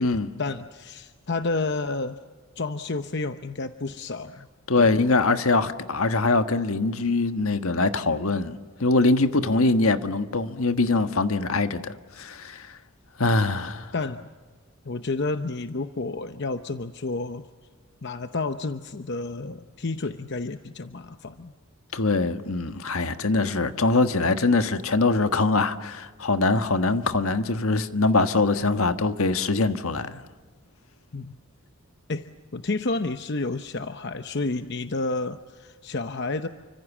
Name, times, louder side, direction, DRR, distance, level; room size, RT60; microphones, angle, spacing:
voice 1, 0.0-2.2 2.6-4.5 4.8-5.0 13.9-14.3 14.8-17.5 18.0-21.5 31.1-31.4 32.1-32.3 32.5-36.5, left 3 dB, 55° left, 0.9 m, -30 dB
voice 2, 4.7-12.7 13.2-13.9 21.9-30.2, left 3 dB, 75° left, 1.5 m, -23 dB
30.0 x 25.0 x 7.3 m
head